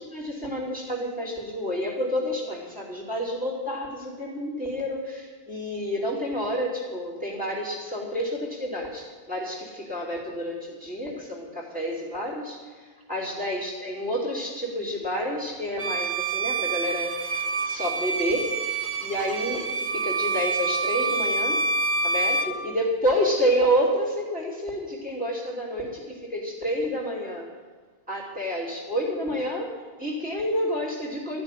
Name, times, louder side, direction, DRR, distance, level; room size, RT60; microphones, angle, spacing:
voice 1, 0.0-21.6 22.0-27.5 28.1-31.4, equal, 5° right, -3 dB, 3.0 m, -29 dB
Bowed string instrument, 15.8-22.6, right 3 dB, 50° right, 1.1 m, -27 dB
14.0 x 6.3 x 10.0 m, 1.5 s
omnidirectional pair, 1.1 m